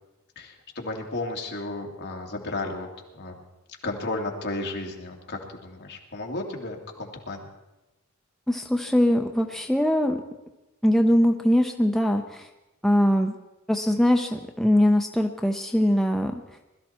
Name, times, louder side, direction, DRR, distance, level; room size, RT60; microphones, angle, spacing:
voice 1, 0.4-2.9 3.2-3.4 3.8-7.5, left 2 dB, 55° left, 0 dB, 2.4 m, -33 dB
voice 2, 8.5-10.2 10.8-12.5 12.8-13.4 13.7-16.4, left 1 dB, ahead, 3 dB, 0.6 m, -22 dB
21.0 x 13.5 x 4.3 m, 1.0 s
head